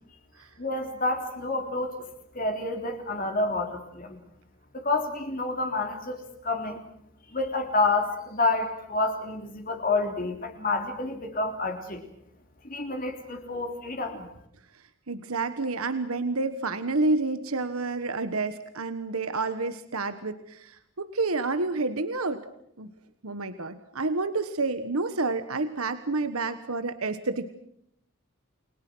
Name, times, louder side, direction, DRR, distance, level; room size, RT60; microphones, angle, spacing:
voice 1, 0.6-2.1 2.3-4.2 4.7-6.2 6.4-6.8 7.3-12.0 12.6-14.3, left 3 dB, 40° left, 4 dB, 3.4 m, -29 dB
voice 2, 15.1-22.4 22.8-22.9 23.2-27.5, right 3 dB, 80° right, 10 dB, 1.4 m, -29 dB
29.5 x 22.0 x 6.3 m, 0.75 s
head